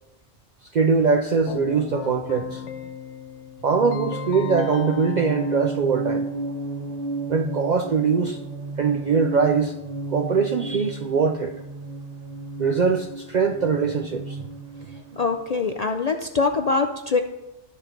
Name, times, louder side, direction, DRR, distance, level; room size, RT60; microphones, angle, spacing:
voice 1, 0.7-2.7 3.6-6.3 7.3-8.4 8.8-9.8 10.1-11.5 12.6-14.4, right 5 dB, 60° right, 0.4 m, -22 dB
Keyboard (musical), 1.5-6.4, left 9 dB, 85° left, 1.0 m, -37 dB
sound 1, 3.7-15.7, right 2 dB, 40° right, 0.8 m, -33 dB
voice 2, 15.2-17.2, left 4 dB, 55° left, 0.4 m, -23 dB
13.0 x 4.4 x 5.1 m
omnidirectional pair, 1.2 m